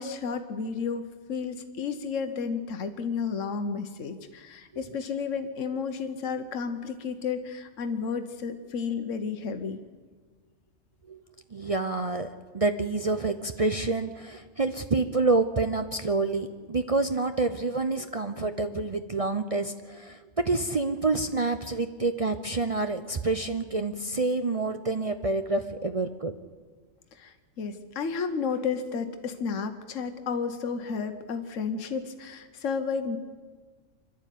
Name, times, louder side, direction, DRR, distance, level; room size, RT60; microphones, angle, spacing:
voice 1, 0.0-9.8 27.1-33.2, left 5 dB, 75° left, 7 dB, 1.4 m, -32 dB
voice 2, 11.5-12.3 12.5-26.3, right 3 dB, 35° right, 7 dB, 0.7 m, -28 dB
25.5 x 12.0 x 9.2 m, 1.5 s
omnidirectional pair, 1.3 m